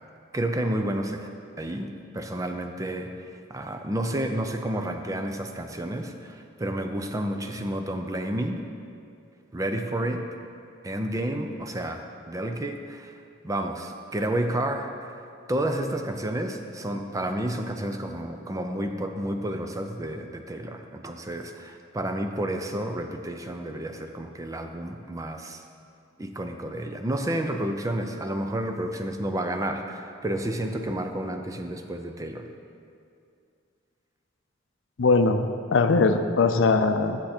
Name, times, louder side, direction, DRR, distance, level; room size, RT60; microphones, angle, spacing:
voice 1, 0.3-1.2 1.6-3.1 3.5-8.6 9.5-10.2 10.8-13.1 13.4-14.9 15.5-25.6 26.2-32.5, right 1 dB, 15° right, 5 dB, 0.5 m, -30 dB
voice 2, 35.0-37.2, left 3 dB, 70° left, 8 dB, 0.5 m, -21 dB
10.0 x 7.2 x 4.3 m, 2.4 s
head